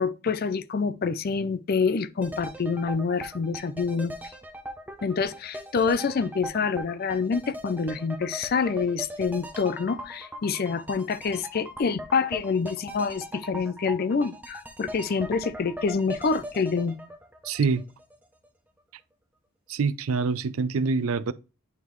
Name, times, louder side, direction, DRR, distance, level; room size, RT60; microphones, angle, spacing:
voice 1, 0.0-4.3 5.0-17.0, left 5 dB, 45° left, 0.4 m, -27 dB
sound 1, 2.2-18.2 18.4-18.5, equal, 5° right, 0.6 m, -40 dB
voice 2, 17.4-17.8 19.7-21.3, right 4 dB, 70° right, 0.4 m, -25 dB
9.6 x 3.6 x 3.0 m
head